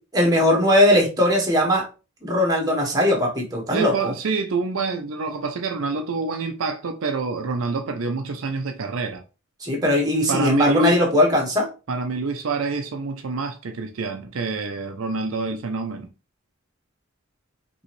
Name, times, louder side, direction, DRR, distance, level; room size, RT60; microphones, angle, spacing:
voice 1, 0.1-1.8 2.2-4.1 9.6-11.7, left 1 dB, 20° right, 1.5 m, -19 dB
voice 2, 3.7-9.2 10.3-11.0 11.9-16.1, right 3 dB, 70° right, 0.5 m, -26 dB
5.3 x 3.0 x 3.0 m
head